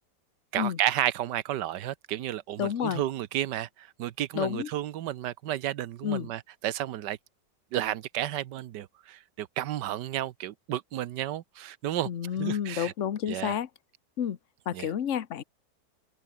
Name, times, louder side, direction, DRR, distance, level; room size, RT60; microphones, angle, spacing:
voice 1, 0.5-7.2 7.7-12.1 12.4-12.9 13.3-13.6 14.7-14.9, right 12 dB, 70° right, 1.4 m, -32 dB
voice 2, 2.6-3.0 4.3-4.7 6.0-6.3 12.1-13.7 14.2-14.4 14.7-15.4, left 9 dB, 45° left, 1.2 m, -30 dB
omnidirectional pair, 2.0 m